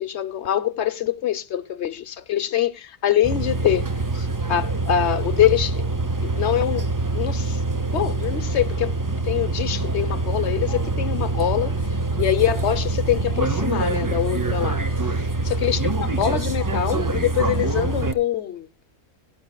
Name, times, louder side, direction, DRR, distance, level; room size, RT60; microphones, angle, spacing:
voice 1, 0.0-5.9 6.2-9.0 9.2-11.7 12.2-15.1 15.5-18.7, left 11 dB, 55° left, 1.0 m, -24 dB
sound 1, 3.2-18.1, right 2 dB, 25° right, 0.5 m, -25 dB
17.5 x 10.5 x 2.3 m
omnidirectional pair, 1.5 m